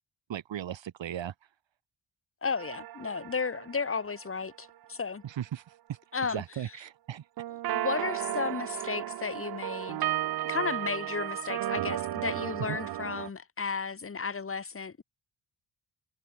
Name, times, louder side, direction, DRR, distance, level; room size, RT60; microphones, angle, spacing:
voice 1, 0.3-1.3 5.2-5.6 5.9-6.0 6.3-7.2 12.7-12.8, right 10 dB, 85° right, 3.0 m, -36 dB
voice 2, 2.4-5.2 6.1-6.4 7.7-10.1 10.4-15.0, left 5 dB, 30° left, 2.6 m, -34 dB
sound 1, 2.6-4.7 7.4-13.3, right 13 dB, 60° right, 0.5 m, -34 dB
wide cardioid pair, 180°, 44 cm